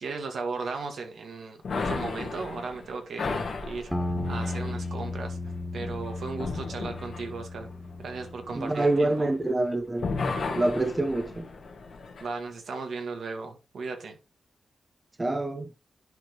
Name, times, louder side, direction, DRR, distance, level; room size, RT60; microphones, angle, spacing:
voice 1, 0.0-3.3 3.6-3.9 4.2-5.4 5.7-7.7 8.0-9.3 12.2-14.2, right 4 dB, 80° right, 1.8 m, -36 dB
sound 1, 1.6-9.7 10.0-12.3, left 4 dB, 70° left, 1.9 m, -35 dB
sound 2, 3.9-8.6, left 2 dB, ahead, 1.8 m, -34 dB
voice 2, 8.5-10.1 10.6-11.5 15.2-15.7, right 2 dB, 25° right, 0.9 m, -26 dB
10.5 x 5.0 x 3.0 m
cardioid pair, 85°, 0 cm